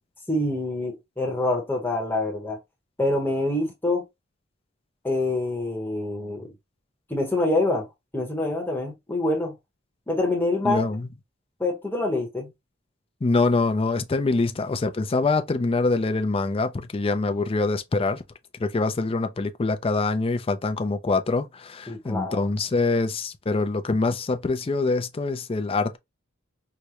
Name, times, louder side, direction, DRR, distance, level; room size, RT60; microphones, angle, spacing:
voice 1, 0.3-2.6 3.0-4.0 5.0-6.5 7.1-7.9 8.1-9.6 10.1-10.9 11.6-12.5 21.9-22.5, left 2 dB, 10° left, 0.9 m, -26 dB
voice 2, 10.6-11.1 13.2-18.2 18.6-26.0, left 3 dB, 30° left, 0.4 m, -24 dB
4.8 x 2.1 x 2.9 m
head